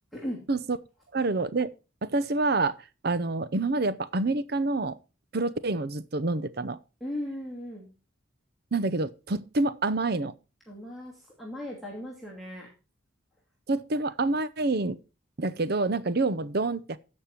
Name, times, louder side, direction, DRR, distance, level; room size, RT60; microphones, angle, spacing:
voice 1, 1.1-1.7 2.0-2.8 3.0-5.0 5.3-6.8 8.7-10.3 13.7-15.0 15.4-17.0, right 3 dB, 50° right, 0.7 m, -27 dB
voice 2, 7.0-7.9 10.7-12.7, left 1 dB, ahead, 2.6 m, -37 dB
15.5 x 5.4 x 4.4 m
head